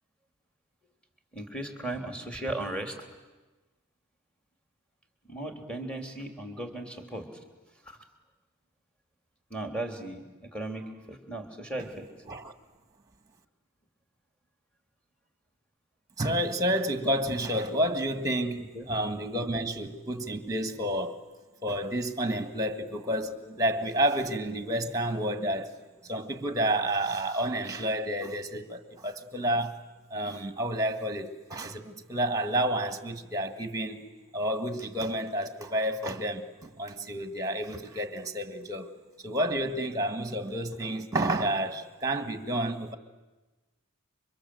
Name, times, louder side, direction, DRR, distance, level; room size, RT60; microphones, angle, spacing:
voice 1, 1.3-3.0 5.3-7.3 7.9-8.0 9.5-12.1 18.7-18.9, right 1 dB, 5° left, 3.2 m, -36 dB
voice 2, 16.2-21.2 21.6-29.8 30.1-38.9 39.2-43.0, right 1 dB, 15° right, 1.7 m, -30 dB
29.5 x 24.5 x 7.9 m
head